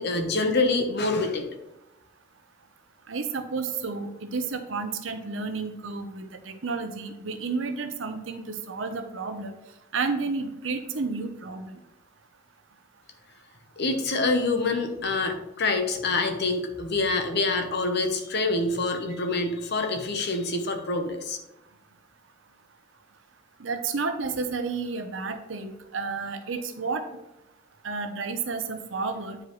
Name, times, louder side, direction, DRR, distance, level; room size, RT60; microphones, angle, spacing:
voice 1, 0.0-1.5 13.8-21.4, left 3 dB, 55° left, 6 dB, 0.9 m, -26 dB
voice 2, 3.1-9.6 9.9-11.7 23.6-27.0 27.8-29.4, right 4 dB, 70° right, 8 dB, 0.8 m, -31 dB
9.7 x 4.9 x 3.1 m, 0.91 s
head